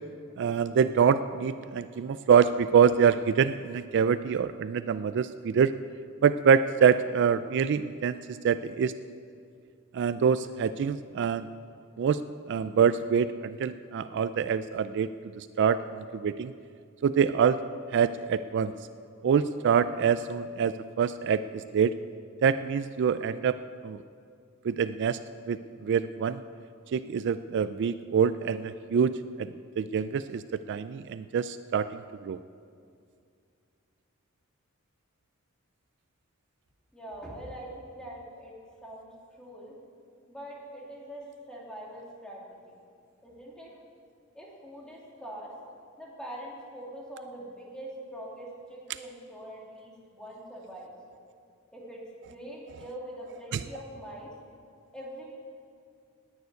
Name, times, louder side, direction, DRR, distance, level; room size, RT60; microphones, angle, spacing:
voice 1, 0.4-5.7 6.2-8.9 9.9-11.5 12.0-12.2 12.5-15.1 15.4-16.5 17.0-17.6 17.9-18.7 19.2-21.9 22.4-23.5 23.8-24.0 24.6-25.2 25.5-26.4 26.9-29.1 29.4-30.4 30.7-32.4 53.5-53.6, right 7 dB, 55° right, 13 dB, 0.3 m, -25 dB
voice 2, 36.9-38.5 38.8-39.1 39.4-39.7 40.3-42.8 43.2-43.7 44.3-45.5 46.0-50.9 51.7-54.3 54.9-55.2, right 1 dB, 5° left, -4 dB, 2.8 m, -43 dB
10.5 x 9.4 x 9.5 m, 2.4 s
head